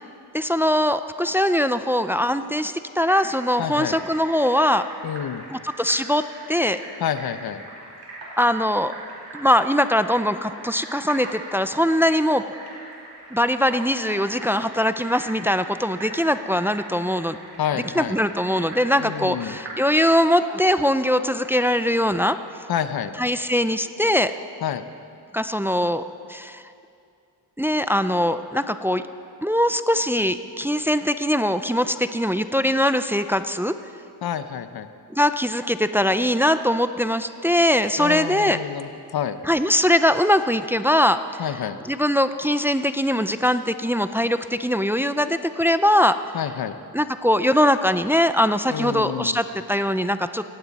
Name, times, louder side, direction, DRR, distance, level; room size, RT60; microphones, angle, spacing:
voice 1, 0.3-4.9 5.5-6.8 8.4-8.9 9.3-12.4 13.3-17.4 18.0-22.4 23.2-24.3 25.3-26.0 26.3-26.6 27.6-29.0 29.4-33.7 35.1-38.6 39.4-41.4 41.8-46.4 46.9-50.4, equal, 5° right, 11 dB, 0.4 m, -21 dB
sound 1, 2.9-20.0, right 2 dB, 90° right, 4.1 m, -41 dB
voice 2, 3.6-4.0 5.0-5.4 7.0-7.6 17.6-18.2 19.0-19.6 22.7-23.1 24.6-24.8 34.2-34.9 38.0-39.4 41.4-41.8 46.3-46.8 48.7-49.4, left 9 dB, 60° left, 11 dB, 0.8 m, -28 dB
18.0 x 15.5 x 4.1 m, 2.5 s
cardioid pair, 95°, 41 cm